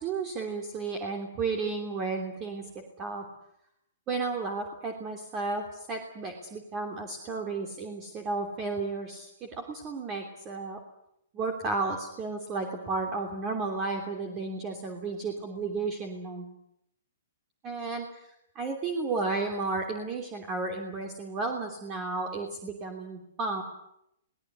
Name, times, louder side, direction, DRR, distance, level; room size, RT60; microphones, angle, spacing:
voice 1, 0.0-3.2 4.1-10.8 11.3-16.5 17.6-18.1 18.5-23.6, right 3 dB, 25° right, 4 dB, 3.1 m, -33 dB
22.0 x 19.0 x 9.4 m, 0.79 s
hypercardioid pair, 145°, 0 cm